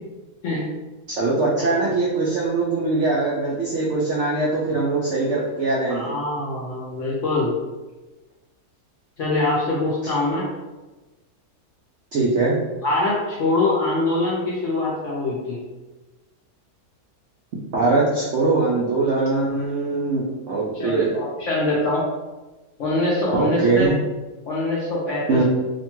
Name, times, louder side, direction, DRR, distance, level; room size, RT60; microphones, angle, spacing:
voice 1, 1.1-6.1 12.1-12.6 17.7-21.2 23.3-23.9 25.3-25.4, right 3 dB, 85° right, -4 dB, 0.6 m, -22 dB
voice 2, 5.9-7.5 9.2-10.5 12.8-15.6 20.7-22.0 22.8-23.9 24.5-25.4, left 2 dB, 70° left, -5 dB, 0.7 m, -23 dB
2.8 x 2.2 x 2.9 m, 1.2 s
omnidirectional pair, 1.8 m